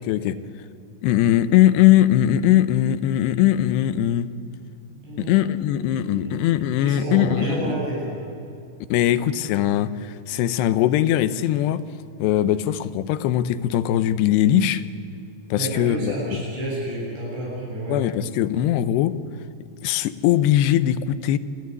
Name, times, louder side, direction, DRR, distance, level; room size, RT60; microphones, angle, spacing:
voice 1, 0.0-0.4 1.0-4.3 5.2-7.8 8.9-11.8 12.2-14.8 15.5-16.4 17.9-19.1 19.8-21.4, left 12 dB, 80° left, 14 dB, 2.8 m, -20 dB
voice 2, 4.9-5.4 5.8-6.4 6.8-8.1 15.5-18.0, right 1 dB, 70° right, -5 dB, 9.9 m, -30 dB
28.0 x 13.5 x 9.6 m, 2.6 s
omnidirectional pair, 5.0 m